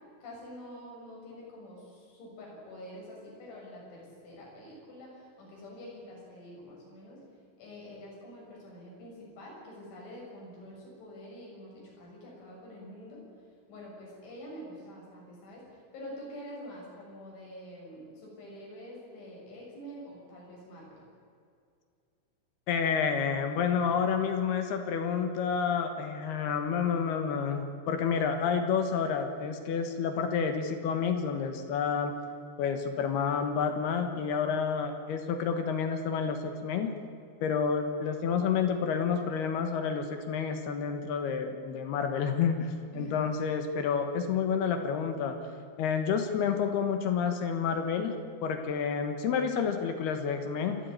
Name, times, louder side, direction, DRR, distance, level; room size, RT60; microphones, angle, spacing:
voice 1, 0.2-7.2 7.6-13.2 13.7-21.0 42.9-43.2, equal, 85° left, -3 dB, 9.1 m, -46 dB
voice 2, 22.7-32.1 32.6-36.9 37.4-45.4 45.8-48.2 48.4-50.8, left 6 dB, 65° left, 7 dB, 3.1 m, -29 dB
27.5 x 12.5 x 9.6 m, 2.4 s
omnidirectional pair, 5.2 m